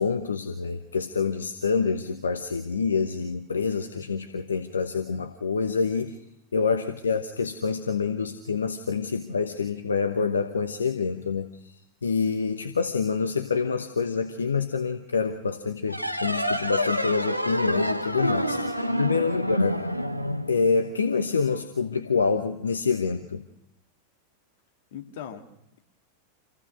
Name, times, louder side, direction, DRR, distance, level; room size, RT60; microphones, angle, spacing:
voice 1, 0.0-6.2 6.5-11.5 12.0-19.8 20.5-23.4, left 5 dB, 75° left, 8 dB, 1.0 m, -27 dB
voice 2, 6.5-6.9 18.7-19.3 24.9-25.5, left 8 dB, 55° left, 5 dB, 2.2 m, -41 dB
sound 1, 15.9-21.1, equal, 90° right, 0.8 m, -27 dB
27.0 x 16.0 x 6.4 m, 0.83 s
figure-of-eight pair, 90°, 0 cm